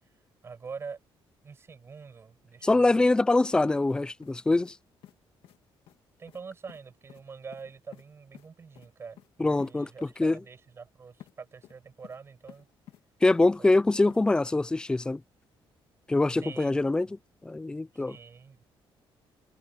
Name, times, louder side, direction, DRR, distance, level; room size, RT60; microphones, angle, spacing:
voice 1, 0.4-1.0 1.4-3.1 6.2-12.7 13.6-13.7 16.3-16.8 17.0-17.1 17.9-18.7, right 5 dB, 30° right, 6.0 m, -45 dB
voice 2, 2.6-4.7 9.4-9.9 10.2-10.4 13.2-15.2 16.1-17.1 17.4-18.2, left 2 dB, 10° left, 0.3 m, -24 dB
sound 1, 3.0-3.2 3.4-4.4 4.6-4.8 5.0-5.1 5.4-5.6 5.9-6.0 6.3-6.4 6.7-6.8 7.1-7.2 7.5-8.0 8.3-8.5 8.7-8.9 9.2-9.3 9.6-9.7 10.0-10.1 11.2-11.3 11.6-12.2 12.5-13.0 13.3-13.8 14.1-14.2, left 12 dB, 90° left, 1.9 m, -51 dB
cardioid pair, 160°, 9 cm